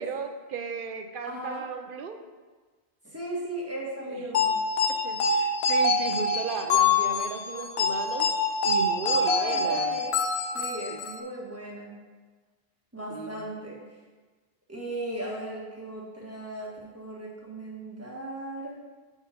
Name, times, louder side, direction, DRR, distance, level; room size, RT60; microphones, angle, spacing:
voice 1, 0.0-2.2 4.1-4.2 4.9-8.3 8.6-10.0 10.9-11.0 13.1-13.4, right 5 dB, 60° right, 7 dB, 0.7 m, -36 dB
voice 2, 1.2-1.7 3.0-4.5 9.0-10.1 10.5-11.9 12.9-13.8 14.7-18.7, right 1 dB, 15° right, -5 dB, 1.6 m, -37 dB
sound 1, 4.3-11.2, left 3 dB, 75° left, 0.8 m, -25 dB
7.3 x 4.5 x 5.0 m, 1.4 s
omnidirectional pair, 1.1 m